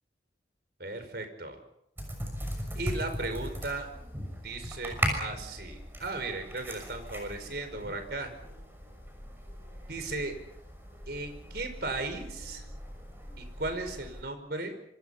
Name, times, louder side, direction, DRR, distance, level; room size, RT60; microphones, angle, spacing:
voice 1, 0.8-1.6 2.7-3.9 4.4-8.3 9.9-10.4 11.1-12.7 13.4-14.7, right 2 dB, 60° right, 7 dB, 5.1 m, -36 dB
sound 1, 2.0-14.2, equal, 10° right, 6.3 m, -38 dB
26.5 x 26.0 x 5.7 m, 0.77 s
head